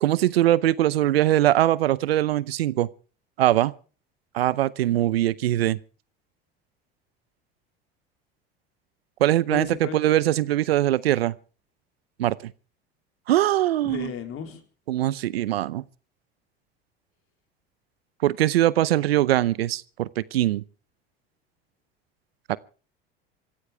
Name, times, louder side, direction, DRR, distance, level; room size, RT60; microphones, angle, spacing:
voice 1, 0.0-2.9 3.4-3.7 4.3-5.8 9.2-11.3 12.2-12.5 13.3-14.1 14.9-15.8 18.2-20.6 22.5-22.6, right 13 dB, 90° right, 0.7 m, -22 dB
voice 2, 9.5-10.0 13.8-14.6, left 7 dB, 50° left, 4.1 m, -34 dB
26.5 x 14.5 x 3.4 m
hypercardioid pair, 75°, 29 cm